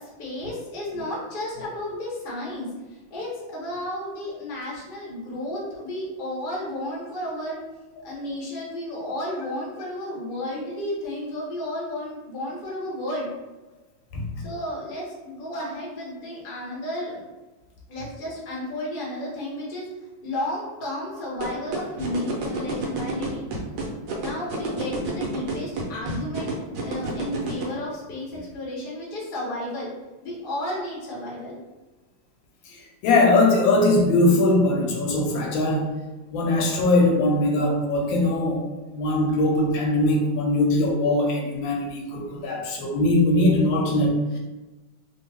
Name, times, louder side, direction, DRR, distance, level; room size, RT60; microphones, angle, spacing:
voice 1, 0.0-7.6 8.0-13.3 14.4-17.2 17.9-19.9 20.2-23.4 24.1-26.5 26.8-29.9 30.2-31.6, left 1 dB, 40° left, -5 dB, 0.8 m, -32 dB
sound 1, 21.4-27.6, right 3 dB, 75° right, 1.3 m, -29 dB
voice 2, 32.7-35.9 36.3-38.6 38.9-44.4, left 2 dB, 80° left, 1 dB, 1.3 m, -21 dB
3.2 x 2.3 x 3.3 m, 1.1 s
omnidirectional pair, 2.1 m